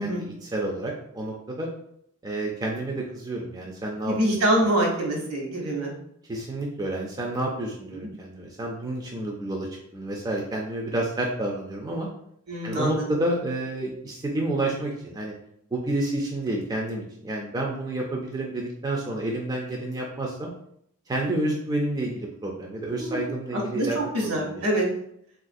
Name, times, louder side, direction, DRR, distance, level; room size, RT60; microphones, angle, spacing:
voice 1, 0.0-1.7 2.2-4.2 4.6-4.7 6.3-12.1 12.6-15.3 15.7-20.5 21.1-24.6, right 1 dB, 20° right, -1 dB, 0.3 m, -30 dB
voice 2, 4.1-5.9 7.9-8.1 12.5-13.2 23.0-23.3 23.5-24.8, right 1 dB, 75° right, -1 dB, 0.9 m, -25 dB
3.3 x 2.4 x 2.5 m, 0.70 s
head